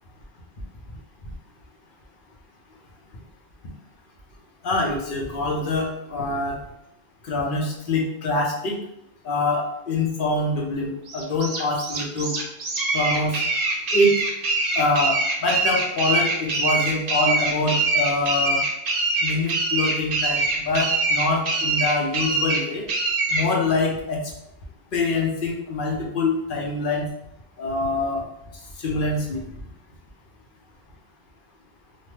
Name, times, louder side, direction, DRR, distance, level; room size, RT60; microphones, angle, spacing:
voice 1, 4.6-6.6 7.3-8.8 9.2-12.3 12.9-13.3 13.9-14.1 14.8-18.6 19.2-20.4 20.7-22.8 23.3-24.2 24.9-27.1 27.6-28.2 28.8-29.4, left 2 dB, 60° left, -1 dB, 0.8 m, -24 dB
sound 1, 11.1-23.5, right 3 dB, 50° right, 0.5 m, -24 dB
2.7 x 2.2 x 3.2 m, 0.81 s
omnidirectional pair, 1.1 m